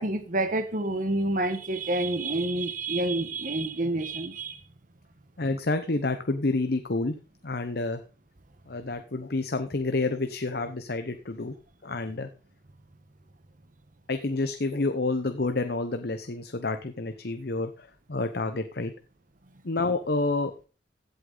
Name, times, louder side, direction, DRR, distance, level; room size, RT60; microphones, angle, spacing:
voice 1, 0.0-4.6, right 2 dB, 50° right, 9 dB, 1.2 m, -28 dB
voice 2, 5.4-7.1 7.4-8.0 8.7-11.5 11.8-12.3 14.1-18.9 19.6-20.5, left 2 dB, 60° left, 8 dB, 0.9 m, -29 dB
16.0 x 8.0 x 4.0 m, 0.36 s
head